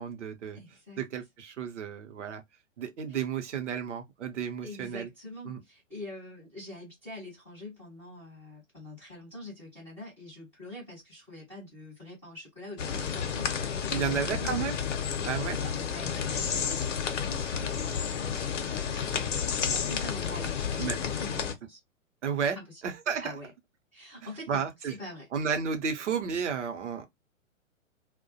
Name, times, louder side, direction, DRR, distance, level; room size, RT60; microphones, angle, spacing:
voice 1, 0.0-0.6 1.0-2.4 2.8-5.1 5.4-5.6 13.9-14.8 15.2-15.6 20.8-21.0 22.2-22.6 22.8-23.3 24.5-25.0 25.3-27.1, right 7 dB, 60° right, 0.7 m, -32 dB
voice 2, 0.5-1.0 3.1-3.2 4.6-14.6 15.6-19.3 19.7-21.8 22.5-22.8 23.2-23.5 23.9-25.3, left 1 dB, 5° left, 0.3 m, -45 dB
sound 1, 12.8-21.5, left 7 dB, 65° left, 0.6 m, -31 dB
2.3 x 2.1 x 2.6 m
figure-of-eight pair, 115°, 40 cm